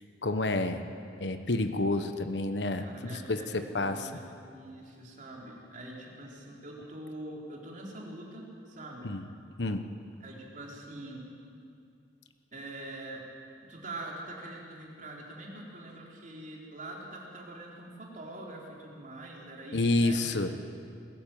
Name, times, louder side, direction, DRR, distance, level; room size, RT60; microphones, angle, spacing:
voice 1, 0.2-0.9 1.2-4.1 9.0-9.2 9.6-9.9 19.7-20.6, left 2 dB, 85° left, 8 dB, 1.1 m, -29 dB
voice 2, 2.8-4.2 4.5-9.2 10.2-11.2 12.5-13.2 13.7-20.6, right 1 dB, 50° right, -2 dB, 4.0 m, -44 dB
21.0 x 14.5 x 9.2 m, 2.4 s
head